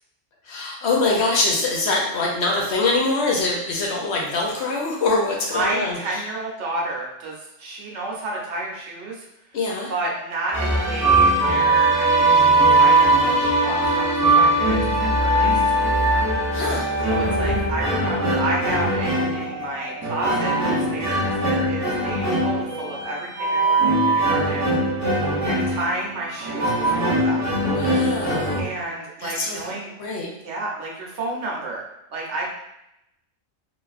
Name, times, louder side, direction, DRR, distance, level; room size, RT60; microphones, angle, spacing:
voice 1, 0.4-6.2 9.5-9.9 16.5-16.9 27.6-28.6 29.2-29.7 30.0-30.3, left 3 dB, 65° left, -1 dB, 0.8 m, -24 dB
voice 2, 5.5-9.3 9.9-16.3 17.1-24.7 25.1-27.4 28.6-29.9 30.4-31.8 32.1-32.5, right 2 dB, 70° right, -3 dB, 1.0 m, -31 dB
sound 1, 10.5-28.6, right 2 dB, 25° right, 0.4 m, -20 dB
3.3 x 2.4 x 2.3 m, 0.85 s
omnidirectional pair, 1.3 m